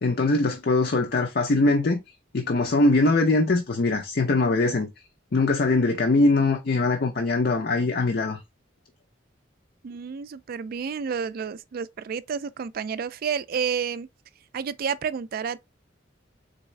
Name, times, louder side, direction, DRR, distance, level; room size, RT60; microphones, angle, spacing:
voice 1, 0.0-2.0 2.3-4.9 5.3-8.4, left 2 dB, 55° left, 0.6 m, -22 dB
voice 2, 9.8-14.1 14.5-15.6, right 6 dB, 50° right, 0.3 m, -30 dB
4.0 x 3.5 x 3.2 m
head